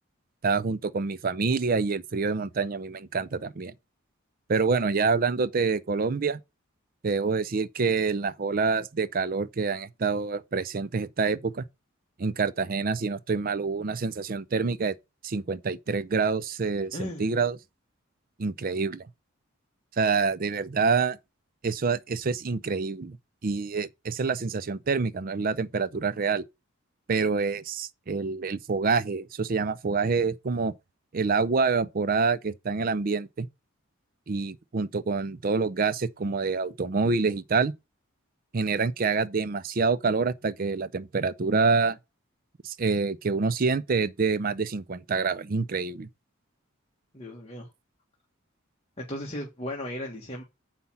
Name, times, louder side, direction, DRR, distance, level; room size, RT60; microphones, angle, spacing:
voice 1, 0.4-3.7 4.5-6.4 7.0-11.6 12.2-15.0 15.2-17.6 18.4-19.1 20.0-21.2 21.6-23.2 23.4-26.4 27.1-30.7 31.1-33.5 34.3-37.7 38.5-42.0 42.6-46.1, right 4 dB, 45° right, 0.5 m, -27 dB
voice 2, 16.9-17.3 47.1-47.7 49.0-50.4, left 1 dB, 30° left, 1.6 m, -36 dB
7.2 x 5.5 x 5.7 m
head